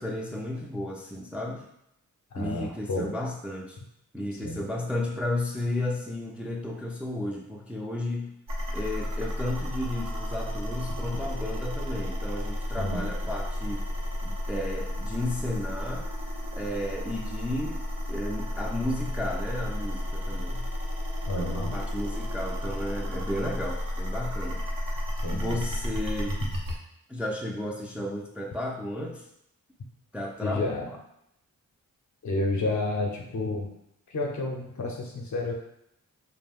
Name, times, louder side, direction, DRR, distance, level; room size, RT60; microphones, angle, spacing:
voice 1, 0.0-1.7 2.4-3.8 4.1-8.3 8.7-13.9 14.2-16.1 16.5-17.8 18.1-20.7 21.4-24.6 25.3-26.4 27.1-29.2 30.1-30.7, left 1 dB, 5° right, -1 dB, 0.4 m, -33 dB
voice 2, 2.3-3.1 4.4-4.6 10.9-11.0 12.7-13.0 21.2-21.8 25.2-25.6 30.4-30.9 32.2-33.7 34.1-35.5, left 2 dB, 55° left, 1 dB, 0.6 m, -30 dB
sound 1, 8.5-26.8, left 1 dB, 70° right, 0.7 m, -32 dB
2.4 x 2.1 x 3.4 m, 0.79 s
cardioid pair, 55°, 34 cm